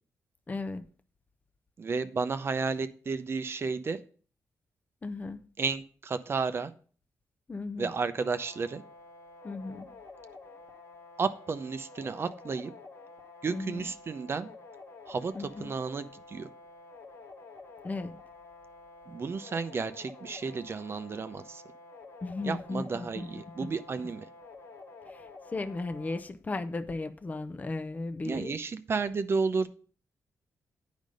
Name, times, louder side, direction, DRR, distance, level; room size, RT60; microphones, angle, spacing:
voice 1, 0.5-0.8 5.0-5.4 7.5-7.9 9.4-9.9 13.5-13.9 15.3-15.7 17.8-18.2 22.2-23.3 23.6-23.7 25.1-28.6, left 3 dB, 25° left, 0.6 m, -36 dB
voice 2, 1.8-4.0 5.6-6.7 7.8-8.8 11.2-12.7 13.4-14.5 15.1-16.5 19.1-21.6 22.4-24.3 28.2-29.7, right 4 dB, 40° right, 0.6 m, -32 dB
sound 1, 8.2-26.2, left 3 dB, 50° left, 1.4 m, -50 dB
9.3 x 5.1 x 5.2 m
cardioid pair, 105°, 6 cm